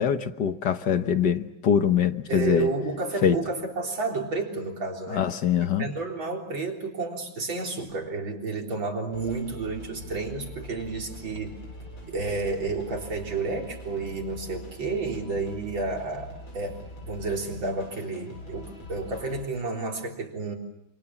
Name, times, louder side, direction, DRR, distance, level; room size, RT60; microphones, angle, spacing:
voice 1, 0.0-2.7 3.2-3.4 5.1-5.9, left 8 dB, 60° left, 9 dB, 1.8 m, -23 dB
voice 2, 2.3-5.3 5.8-11.6 12.1-20.6, right 3 dB, 70° right, 1 dB, 4.5 m, -31 dB
sound 1, 9.1-19.5, left 1 dB, 85° left, 8.8 m, -43 dB
27.5 x 27.5 x 7.3 m, 0.85 s
omnidirectional pair, 2.2 m